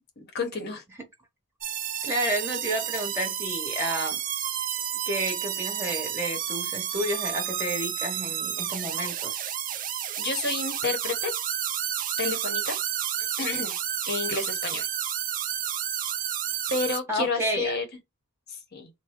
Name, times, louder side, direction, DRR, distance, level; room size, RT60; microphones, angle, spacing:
voice 1, 0.2-0.8 10.2-11.3 12.2-12.8 13.2-13.8 14.0-14.9 16.7-17.9 18.5-18.9, left 3 dB, 45° left, 0.8 m, -30 dB
sound 1, 1.6-17.0, right 10 dB, 35° right, 0.3 m, -31 dB
voice 2, 2.0-4.2 5.1-9.5 17.1-17.8, right 1 dB, 10° right, 0.9 m, -30 dB
3.5 x 2.1 x 3.6 m
head